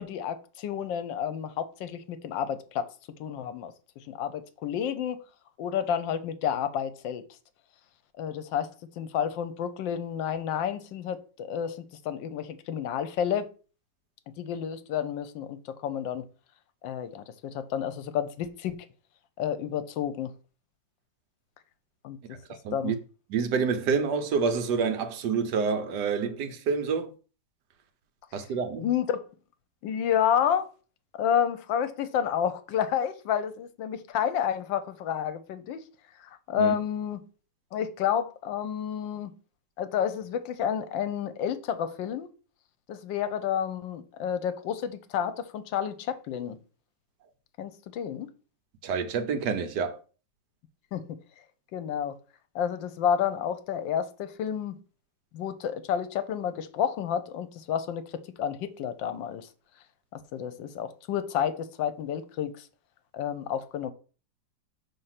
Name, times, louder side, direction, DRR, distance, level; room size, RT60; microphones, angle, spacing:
voice 1, 0.0-2.9 3.2-5.2 5.6-7.2 8.2-8.7 9.0-13.5 14.4-16.2 16.8-18.8 19.4-20.3 22.0-22.4 22.7-22.9 28.8-29.2 29.8-30.7 31.2-35.8 36.2-37.2 37.7-39.3 39.8-42.3 42.9-46.6 47.6-48.3 50.9-51.2 51.7-52.2 52.5-54.8 55.3-59.5 60.1-62.7 63.1-63.9, left 9 dB, 85° left, 1.4 m, -30 dB
voice 2, 22.6-23.0 23.3-27.1 28.3-28.9 36.6-36.7 48.8-50.0, right 5 dB, 70° right, 1.2 m, -28 dB
5.8 x 3.3 x 5.7 m
omnidirectional pair, 2.0 m